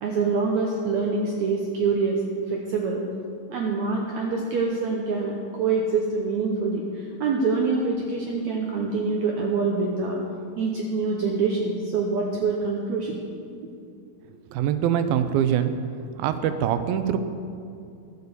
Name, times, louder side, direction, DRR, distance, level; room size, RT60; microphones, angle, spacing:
voice 1, 0.0-2.2 2.5-3.0 3.5-10.2 10.6-13.2, right 4 dB, 70° right, -1 dB, 1.8 m, -25 dB
voice 2, 14.5-15.7 16.2-17.2, right 9 dB, 90° right, 10 dB, 2.5 m, -23 dB
13.5 x 7.0 x 6.8 m, 2.5 s
omnidirectional pair, 4.1 m